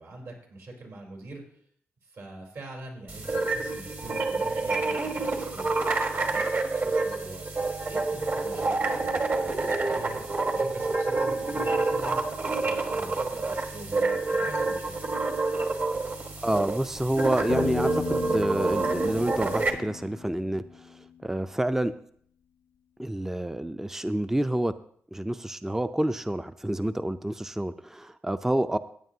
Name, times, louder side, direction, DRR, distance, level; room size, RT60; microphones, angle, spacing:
voice 1, 0.0-1.4 2.0-5.7 6.1-7.5 7.9-10.2 10.5-12.2 12.6-15.1, right 2 dB, 65° right, 1 dB, 3.6 m, -44 dB
sound 1, 3.1-19.7, right 3 dB, 45° right, 1.6 m, -28 dB
voice 2, 16.4-22.0 23.0-24.7 25.1-28.8, right 1 dB, 5° right, 12 dB, 0.4 m, -28 dB
Piano, 17.5-21.2, left 8 dB, 70° left, 0.3 m, -36 dB
15.0 x 8.9 x 2.8 m, 0.62 s
supercardioid pair, 55°, 5 cm